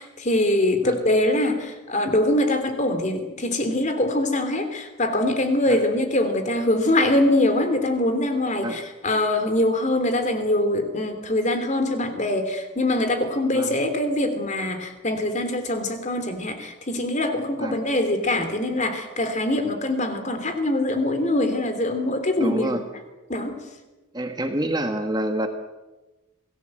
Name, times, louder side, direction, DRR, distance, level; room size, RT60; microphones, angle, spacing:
voice 1, 0.0-22.8 23.3-23.6, left 1 dB, 35° left, 8 dB, 3.1 m, -23 dB
voice 2, 22.4-22.8 24.1-25.5, right 1 dB, 20° right, 6 dB, 1.5 m, -27 dB
27.0 x 18.5 x 7.8 m, 1.1 s
head